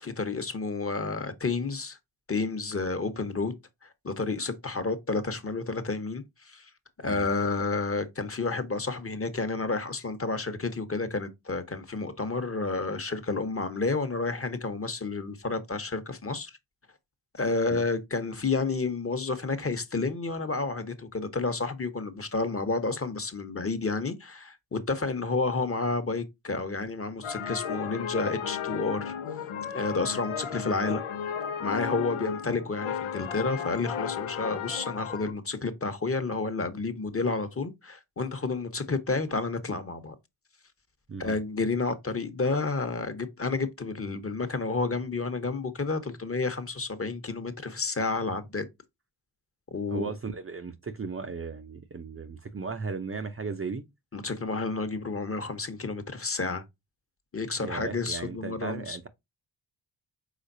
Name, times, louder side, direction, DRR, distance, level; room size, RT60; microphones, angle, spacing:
voice 1, 0.0-2.0 2.3-3.6 3.8-6.7 7.0-16.5 17.3-29.1 29.7-31.0 31.6-40.1 41.2-48.7 49.7-50.1 54.1-56.6 57.3-59.0, left 3 dB, 30° left, 1.1 m, -30 dB
sound 1, 27.2-35.3, left 8 dB, 80° left, 0.8 m, -34 dB
voice 2, 49.9-53.8 57.6-59.1, right 5 dB, 30° right, 0.7 m, -36 dB
5.0 x 3.8 x 2.6 m
supercardioid pair, 45°, 48 cm